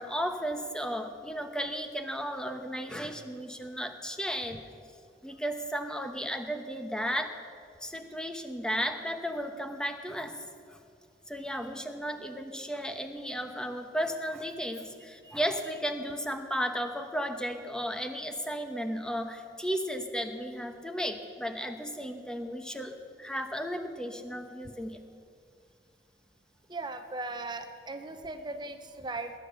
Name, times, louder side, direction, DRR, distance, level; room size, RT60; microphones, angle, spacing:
voice 1, 0.0-4.6 5.2-7.4 7.8-10.4 10.7-10.8 11.3-25.0, equal, 5° left, 6 dB, 1.1 m, -34 dB
voice 2, 26.7-29.3, right 2 dB, 25° right, 8 dB, 0.8 m, -38 dB
20.0 x 9.9 x 6.9 m, 2.2 s
head